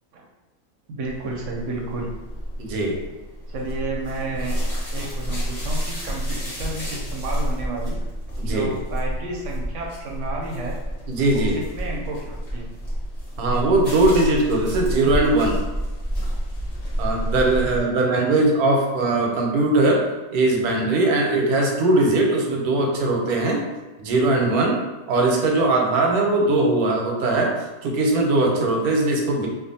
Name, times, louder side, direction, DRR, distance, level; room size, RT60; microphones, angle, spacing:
voice 1, 0.9-2.1 3.5-4.6 4.9-8.0 8.4-10.8 11.3-12.7 17.5-18.3, right 2 dB, 65° right, -1 dB, 0.8 m, -32 dB
sound 1, 1.1-17.8, equal, 35° left, 0.7 m, -29 dB
voice 2, 2.6-3.0 8.4-8.7 11.1-11.5 13.4-15.6 17.0-20.0 20.3-23.6 24.0-24.8 25.1-27.5 27.8-29.5, right 2 dB, 85° right, 0 dB, 1.1 m, -20 dB
2.5 x 2.4 x 2.6 m, 1.2 s
omnidirectional pair, 1.6 m